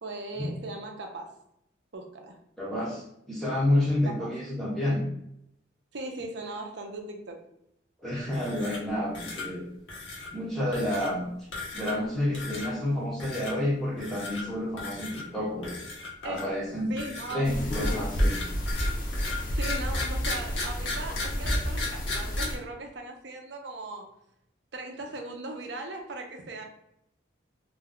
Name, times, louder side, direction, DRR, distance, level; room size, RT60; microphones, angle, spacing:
voice 1, 0.0-1.4 1.9-2.4 4.0-4.2 5.9-7.4 16.2-16.6 16.9-17.4 19.3-24.1 24.7-26.6, right 2 dB, 60° right, 3 dB, 0.5 m, -38 dB
voice 2, 2.6-5.0 8.0-9.6 10.3-11.3 11.7-15.8 16.2-16.9 17.3-18.4, left 1 dB, ahead, -6 dB, 0.6 m, -29 dB
sound 1, 8.3-8.9 9.1-9.5 9.9-10.3 10.7-11.1 11.5-12.1 12.3-12.7 13.2-13.5 14.0-14.4 14.8-15.2 15.6-16.6 17.0-22.4, left 3 dB, 70° left, 0.8 m, -36 dB
sound 2, 17.4-22.6, equal, 45° left, 0.6 m, -30 dB
2.5 x 2.2 x 3.6 m, 0.77 s
head